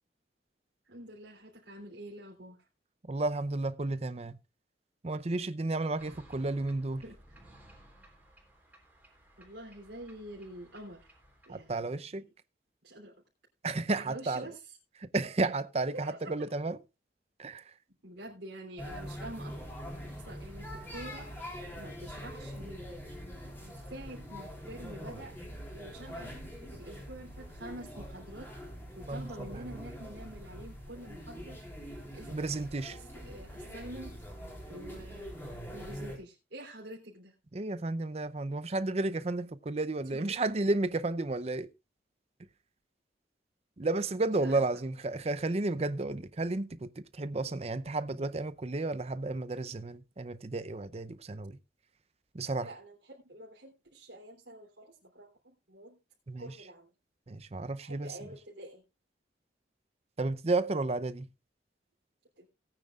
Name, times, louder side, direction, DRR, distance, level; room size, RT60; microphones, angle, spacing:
voice 1, 0.9-2.6 7.0-7.4 9.4-11.0 11.5-12.2 12.8-13.1 14.0-14.8 15.9-16.3 18.0-19.5 20.2-21.3 21.8-22.8 23.6-25.3 25.7-26.3 26.7-28.5 28.9-31.6 32.1-34.2 34.7-35.4 35.7-37.3 40.1-40.5 44.4-44.9 52.6-56.0 56.4-56.9 57.8-58.8 62.4-62.5, right 1 dB, 80° right, 3.3 m, -47 dB
voice 2, 3.1-4.3 5.0-7.0 11.5-12.2 13.6-14.5 15.0-16.8 17.4-17.6 29.1-29.8 32.3-33.0 37.5-41.7 43.8-51.6 52.3-52.7 56.3-56.5 57.3-58.1 60.2-61.3, right 2 dB, 35° right, 0.6 m, -32 dB
sound 1, 6.0-11.8, right 1 dB, 10° right, 3.3 m, -58 dB
sound 2, 18.8-36.2, equal, 15° left, 3.8 m, -44 dB
18.5 x 9.1 x 2.4 m
head